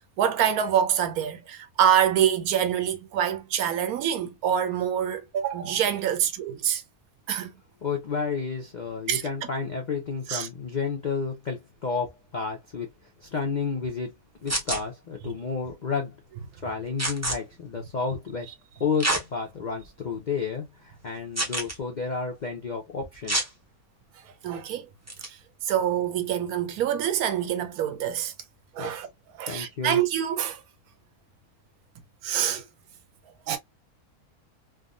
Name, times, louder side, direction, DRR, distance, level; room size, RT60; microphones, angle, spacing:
voice 1, 0.2-6.8 7.3-7.5 9.1-9.2 10.3-10.5 24.4-24.9 25.2-25.4 25.6-28.3 28.7-29.1 29.4-30.6 32.2-32.6 33.5-33.6, right 9 dB, 75° right, 1.1 m, -25 dB
voice 2, 7.8-12.9 13.2-14.1 14.4-16.2 16.6-18.5 18.8-23.5 28.8-28.9 29.5-30.0, left 5 dB, 60° left, 0.4 m, -31 dB
Fabric Ripping, 14.5-14.8 17.0-17.4 19.0-19.2 19.8-19.9 21.3-21.7 23.3-23.5 25.1-25.3, right 1 dB, 20° right, 0.4 m, -26 dB
3.5 x 2.1 x 2.4 m
omnidirectional pair, 1.6 m